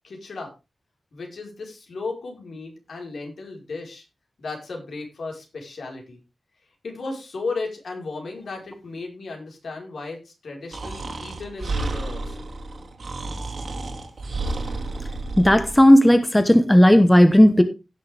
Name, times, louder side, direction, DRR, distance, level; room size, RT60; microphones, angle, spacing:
voice 1, 0.0-0.5 1.1-4.0 4.4-6.2 6.8-12.5, left 3 dB, 70° left, 1 dB, 4.5 m, -35 dB
Breathing, 10.7-15.8, right 2 dB, 55° right, 2.5 m, -31 dB
voice 2, 15.4-17.6, equal, 5° left, 9 dB, 1.0 m, -14 dB
17.0 x 6.6 x 3.5 m, 0.27 s
wide cardioid pair, 140°, 0 cm